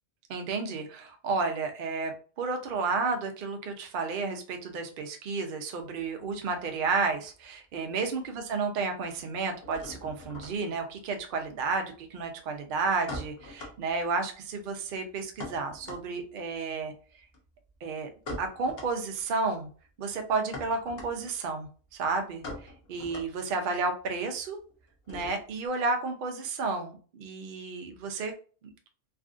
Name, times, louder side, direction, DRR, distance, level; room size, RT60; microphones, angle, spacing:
voice 1, 0.3-2.1 2.4-16.9 17.8-18.1 18.4-19.7 20.0-24.6 25.1-28.3, right 4 dB, 65° right, 5 dB, 0.5 m, -32 dB
sound 1, 5.9-7.4 7.7-8.4 8.6-25.7, left 1 dB, 50° left, 0.8 m, -45 dB
3.4 x 2.4 x 2.4 m, 0.40 s
omnidirectional pair, 1.5 m